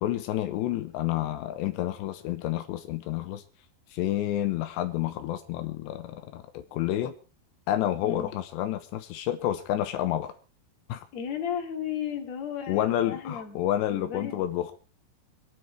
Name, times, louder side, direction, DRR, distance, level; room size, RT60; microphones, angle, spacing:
voice 1, 0.0-3.4 3.9-7.1 7.7-10.3 10.9-11.0 12.7-14.7, left 13 dB, 85° left, 8 dB, 3.2 m, -29 dB
voice 2, 8.0-8.3 11.1-13.6 13.9-14.4, left 8 dB, 45° left, 3 dB, 3.3 m, -34 dB
25.0 x 9.8 x 4.5 m, 0.35 s
omnidirectional pair, 5.0 m